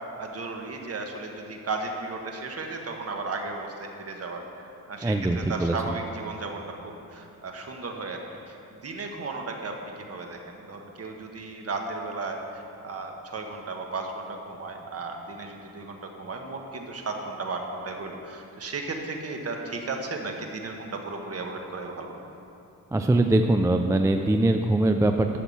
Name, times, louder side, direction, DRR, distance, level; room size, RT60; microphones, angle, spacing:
voice 1, 0.2-4.4 4.9-22.1, right 3 dB, 45° right, 2 dB, 1.4 m, -35 dB
voice 2, 5.0-5.8 22.9-25.4, right 2 dB, 10° right, 5 dB, 0.4 m, -22 dB
12.0 x 5.9 x 7.2 m, 2.7 s
cardioid pair, 110°, 34 cm